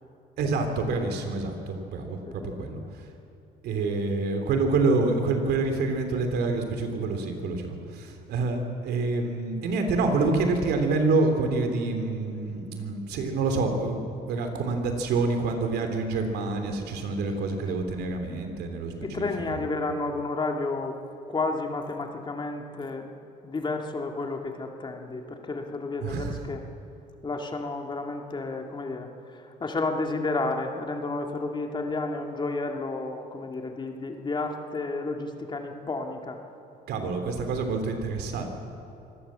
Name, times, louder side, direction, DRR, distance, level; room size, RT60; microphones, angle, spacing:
voice 1, 0.4-3.1 3.6-19.7 26.0-26.5 36.9-38.5, right 3 dB, 75° right, 5 dB, 3.2 m, -27 dB
voice 2, 2.3-2.8 19.0-21.0 21.3-23.1 23.4-26.6 27.2-36.4, left 3 dB, 25° left, 3 dB, 2.4 m, -31 dB
25.0 x 17.0 x 7.6 m, 2.7 s
cardioid pair, 110°, 17 cm